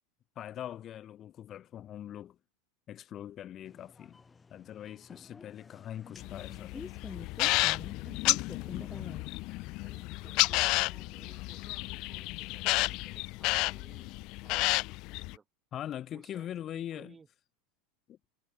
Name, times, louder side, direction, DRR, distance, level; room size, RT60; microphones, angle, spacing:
voice 1, 0.4-2.4 2.9-4.2 4.5-6.7 15.7-17.1 18.1-18.2, left 11 dB, 40° left, 2.5 m, -42 dB
sound 1, 3.7-9.7, left 4 dB, 20° left, 0.7 m, -48 dB
sound 2, 6.2-15.4, left 23 dB, 55° left, 0.4 m, -31 dB
voice 2, 8.5-9.3 9.8-15.5 16.1-17.3, right 5 dB, 20° right, 7.0 m, -59 dB
hypercardioid pair, 90°, 0 cm